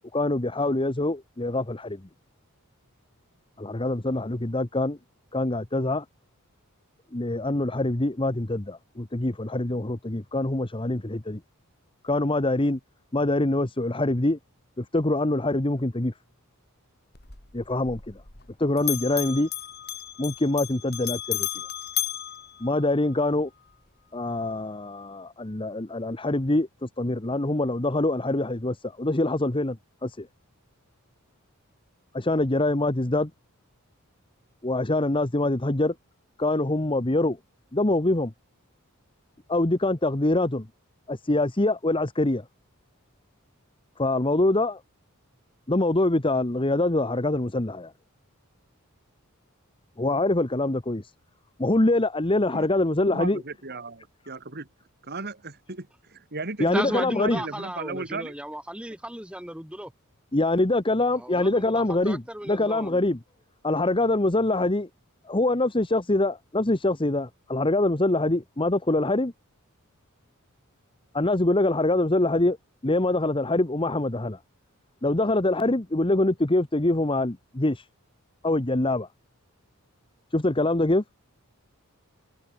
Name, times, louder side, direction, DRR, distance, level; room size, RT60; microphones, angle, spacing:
voice 1, 0.1-2.0 3.6-5.0 5.3-6.0 7.1-11.4 12.0-12.8 13.1-14.4 14.8-16.1 17.5-18.2 18.6-19.5 20.2-21.5 22.6-23.5 24.1-30.3 32.1-33.3 34.6-35.9 36.4-37.4 37.7-38.3 39.5-40.7 41.1-42.4 44.0-44.8 45.7-47.9 50.0-51.0 51.6-53.4 56.6-57.4 60.3-63.2 63.6-64.9 65.2-69.3 71.1-72.6 72.8-74.4 75.0-77.8 78.4-79.1 80.3-81.0, left 2 dB, 25° left, 1.2 m, -24 dB
Bell, 17.1-18.5 18.8-23.3, left 13 dB, 45° left, 3.6 m, -34 dB
voice 2, 53.0-54.7 55.0-58.3, right 3 dB, 45° right, 3.0 m, -36 dB
voice 3, 56.6-59.9 61.1-63.1, right 1 dB, 5° right, 3.1 m, -35 dB
head